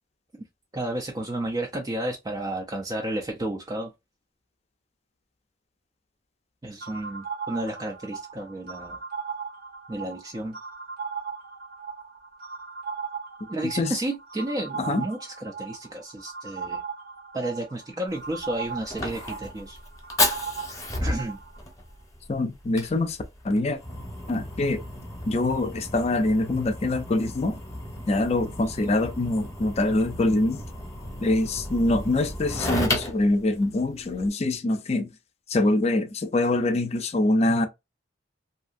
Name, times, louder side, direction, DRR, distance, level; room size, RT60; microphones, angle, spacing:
voice 1, 0.7-3.9 6.6-9.0 9.9-10.6 13.5-16.8 17.3-19.8 21.0-21.4, right 1 dB, 20° right, 0.4 m, -32 dB
sound 1, 6.8-21.6, right 5 dB, 55° right, 0.7 m, -38 dB
Fire, 18.1-34.3, left 1 dB, 20° left, 0.9 m, -33 dB
voice 2, 22.3-23.2 23.4-23.8 24.3-24.8 25.3-27.6 28.1-30.6 31.2-35.1 35.5-37.7, left 2 dB, 35° left, 0.5 m, -24 dB
2.7 x 2.5 x 2.4 m
head